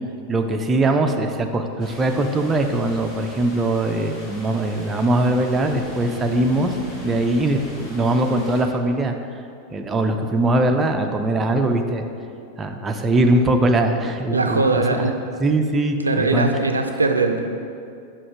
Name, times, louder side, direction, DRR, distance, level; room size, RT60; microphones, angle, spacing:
voice 1, 0.3-6.8 7.0-9.2 9.7-12.1 12.6-15.1 15.4-16.5, right 2 dB, 20° right, 5 dB, 0.4 m, -21 dB
sound 1, 1.8-8.6, left 1 dB, 35° left, 1.6 m, -39 dB
voice 2, 14.3-15.2 16.0-17.4, right 3 dB, 80° right, 6 dB, 0.4 m, -20 dB
5.8 x 4.9 x 4.7 m, 2.5 s
figure-of-eight pair, 90°, 0 cm